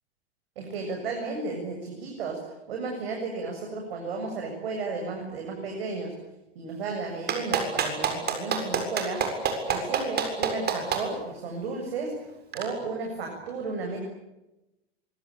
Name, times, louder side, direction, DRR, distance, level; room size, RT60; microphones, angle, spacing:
voice 1, 0.6-2.4 2.7-6.1 6.6-9.2 9.7-12.3 12.5-14.0, right 3 dB, 70° right, 2 dB, 7.5 m, -33 dB
Clapping, 7.3-11.0 12.5-12.6, right 7 dB, 30° right, 7.4 m, -26 dB
24.5 x 24.5 x 8.9 m, 0.98 s
hypercardioid pair, 100°, 31 cm